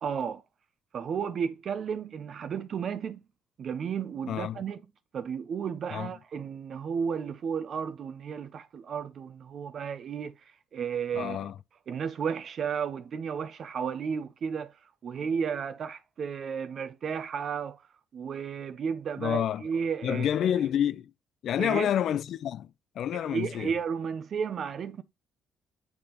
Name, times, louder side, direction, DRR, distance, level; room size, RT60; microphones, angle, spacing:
voice 1, 0.0-0.4 0.9-3.2 3.6-4.8 5.1-11.5 11.9-14.7 15.0-17.8 18.1-20.3 21.6-21.9 23.1-25.0, right 6 dB, 60° right, 0.4 m, -33 dB
voice 2, 4.3-4.6 5.9-6.1 11.1-11.6 19.2-19.6 20.0-21.1 21.4-22.7 23.0-23.8, left 10 dB, 70° left, 0.3 m, -28 dB
9.4 x 3.4 x 2.9 m
cardioid pair, 90°, 0 cm